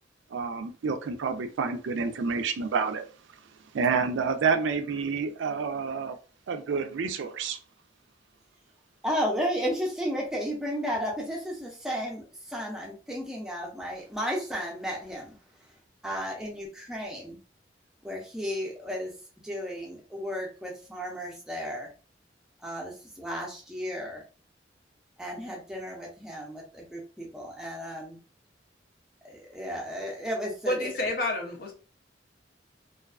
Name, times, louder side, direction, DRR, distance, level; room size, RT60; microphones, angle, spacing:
voice 1, 0.3-3.0 3.7-6.2 6.5-7.6, right 5 dB, 90° right, 0.4 m, -28 dB
voice 2, 9.0-15.3 16.0-17.4 18.0-19.1 19.4-21.9 22.6-24.2 25.2-28.2 29.2-30.9, equal, 5° right, 0.6 m, -33 dB
voice 3, 30.7-31.7, left 1 dB, 55° left, 0.6 m, -29 dB
2.4 x 2.2 x 2.3 m
head